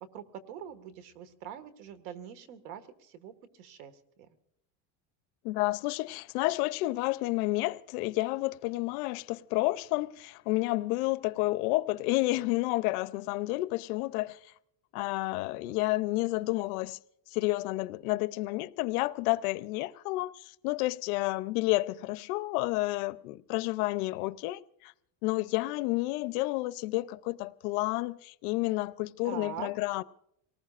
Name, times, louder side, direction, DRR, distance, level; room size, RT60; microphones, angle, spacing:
voice 1, 0.1-3.9 29.2-29.7, right 9 dB, 85° right, 1.8 m, -43 dB
voice 2, 5.4-14.4 14.9-17.0 17.3-24.9 25.2-30.0, left 20 dB, 80° left, 0.7 m, -30 dB
27.0 x 19.0 x 2.5 m
cardioid pair, 160°, 44 cm